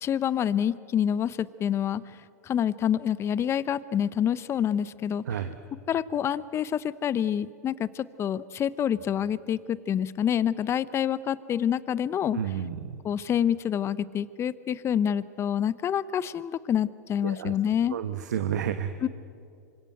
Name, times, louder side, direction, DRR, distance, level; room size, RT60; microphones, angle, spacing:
voice 1, 0.0-2.0 2.5-5.2 5.9-12.4 13.0-18.0 19.0-19.1, left 9 dB, 30° left, 17 dB, 0.8 m, -27 dB
voice 2, 12.3-13.0 17.2-17.5 17.9-18.9, right 9 dB, 80° right, 9 dB, 1.3 m, -30 dB
26.5 x 25.5 x 7.9 m, 2.4 s
hypercardioid pair, 110°, 9 cm